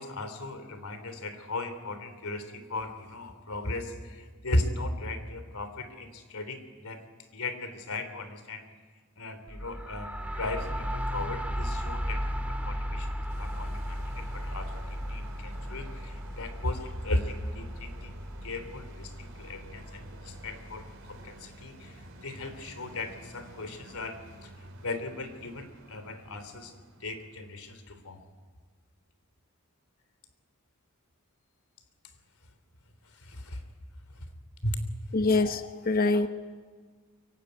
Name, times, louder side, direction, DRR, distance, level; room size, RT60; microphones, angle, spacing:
voice 1, 0.0-7.1 7.3-8.7 9.2-18.1 18.4-24.5 24.8-26.7 27.0-28.2 33.1-33.6 34.1-34.3 34.6-34.8, left 2 dB, 80° left, 10 dB, 3.2 m, -36 dB
sound 1, 9.5-21.1, equal, 5° right, 2.3 m, -36 dB
sound 2, 13.3-27.9 28.3-28.4, right 1 dB, 60° right, 4.7 m, -49 dB
voice 2, 35.1-36.3, left 3 dB, 40° left, 8 dB, 1.1 m, -25 dB
24.5 x 23.5 x 9.6 m, 1.5 s
head